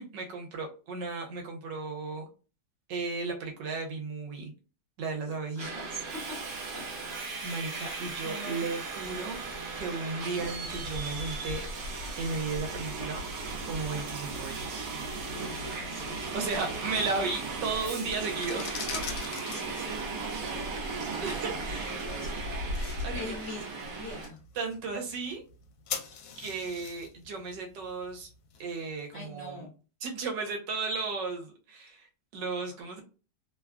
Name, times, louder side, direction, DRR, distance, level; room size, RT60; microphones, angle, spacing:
voice 1, 0.0-2.3 2.9-4.5 5.0-5.9 7.4-9.4 9.7-11.6 12.2-13.2 13.6-14.9 16.3-19.0 20.3-20.5 21.2-22.0 22.9-23.4 24.5-25.4 26.4-28.3 28.6-29.6 30.0-33.0, right 4 dB, 80° right, 2 dB, 1.4 m, -35 dB
voice 2, 5.6-6.4 6.7-6.8 7.7-8.7 9.0-9.3 11.5-11.6 15.3-16.3 19.4-22.3 23.1-24.4 29.1-29.7, left 2 dB, 45° left, -3 dB, 1.0 m, -44 dB
Subway metro underground, 5.6-24.3, right 3 dB, 60° right, 1.1 m, -36 dB
sound 1, 8.9-14.6, equal, 30° right, 0.9 m, -53 dB
sound 2, 18.2-29.0, left 7 dB, 80° left, 1.3 m, -44 dB
3.2 x 2.3 x 2.3 m, 0.35 s
omnidirectional pair, 1.9 m